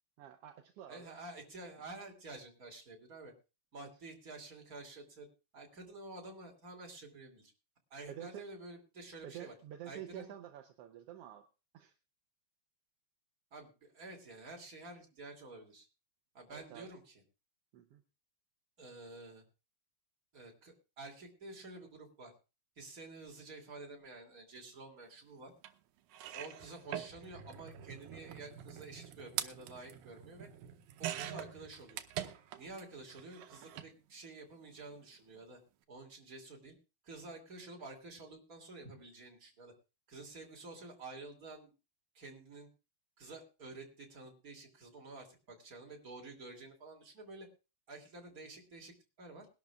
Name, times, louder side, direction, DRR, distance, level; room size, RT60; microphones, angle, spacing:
voice 1, 0.2-1.2 3.8-3.9 8.1-8.5 9.2-11.5 11.7-11.9 16.5-16.9 17.7-18.0, right 10 dB, 70° right, 5 dB, 1.5 m, -49 dB
voice 2, 0.9-3.3 3.7-5.3 5.5-7.5 7.9-9.5 9.8-10.3 13.5-15.9 16.3-17.1 18.8-19.4 20.3-22.3 22.8-25.5 26.3-30.5 31.0-32.0 32.6-35.6 35.9-36.8 37.0-39.7 40.1-41.7 42.1-42.7 43.2-47.5 47.9-49.5, right 2 dB, 30° right, 0 dB, 3.0 m, -50 dB
sound 1, 25.6-25.7 26.1-32.8 33.1-33.9 34.9-35.1 35.4-35.5, right 11 dB, 90° right, 2.3 m, -44 dB
22.0 x 12.0 x 2.4 m, 0.29 s
omnidirectional pair, 3.4 m